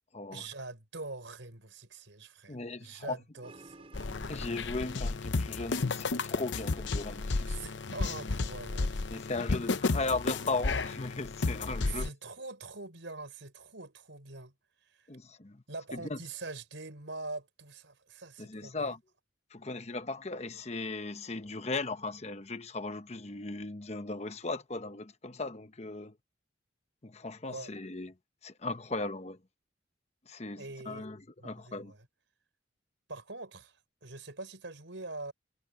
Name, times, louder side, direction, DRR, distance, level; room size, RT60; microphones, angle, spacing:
voice 1, 0.3-3.9 7.4-8.9 11.8-14.5 15.0-15.1 15.7-19.0 27.5-27.7 30.6-31.1 31.4-32.1 33.1-35.3, right 3 dB, 75° right, 4.4 m, -44 dB
voice 2, 2.5-3.2 4.3-7.6 9.1-12.1 15.1-15.6 15.9-16.2 18.4-19.0 19.5-26.1 27.0-28.1 28.4-29.4 30.3-31.9, left 3 dB, 35° left, 1.0 m, -37 dB
sound 1, 3.4-8.7, right 2 dB, 30° right, 4.6 m, -59 dB
sound 2, 3.9-12.1, left 3 dB, 70° left, 0.7 m, -33 dB
head